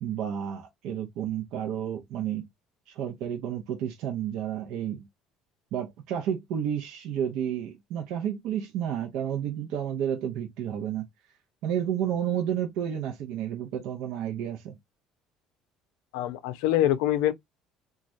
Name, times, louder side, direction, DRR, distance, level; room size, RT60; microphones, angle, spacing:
voice 1, 0.0-2.5 2.9-5.1 5.7-11.1 11.6-14.8, right 9 dB, 75° right, 0.7 m, -31 dB
voice 2, 16.1-17.3, left 12 dB, 85° left, 0.5 m, -24 dB
3.1 x 2.3 x 2.5 m
supercardioid pair, 95°, 0 cm